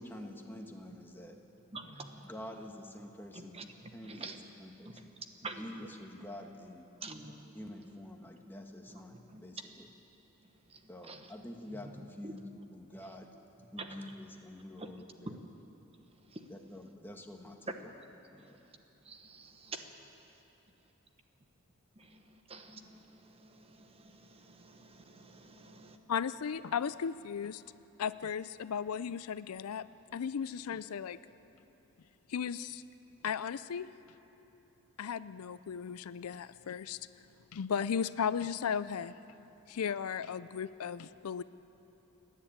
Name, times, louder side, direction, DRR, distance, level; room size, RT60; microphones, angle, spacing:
voice 1, 0.0-1.3 2.2-3.6 3.9-4.3 4.6-5.1 5.5-6.9 7.5-9.9 10.9-13.3 13.7-15.4 16.5-17.9 18.3-18.6, left 1 dB, 10° left, 2 dB, 1.4 m, -47 dB
voice 2, 1.7-2.3 3.3-4.4 4.8-5.0 5.4-5.9 7.0-7.5 8.9-9.0 9.3-9.4 10.7-10.8 11.1-11.3 11.7-11.8 12.2-12.3 13.8-14.0 14.8-14.9 15.3-15.4 16.3-16.4 19.0-19.9 22.0-26.0, right 3 dB, 25° right, 6 dB, 1.1 m, -47 dB
voice 3, 26.1-27.6 28.0-29.9 30.1-31.2 32.3-32.8 33.2-33.9 35.0-37.3 37.5-39.1 39.7-41.4, left 7 dB, 85° left, 15 dB, 0.5 m, -35 dB
29.0 x 10.5 x 8.7 m, 3.0 s
head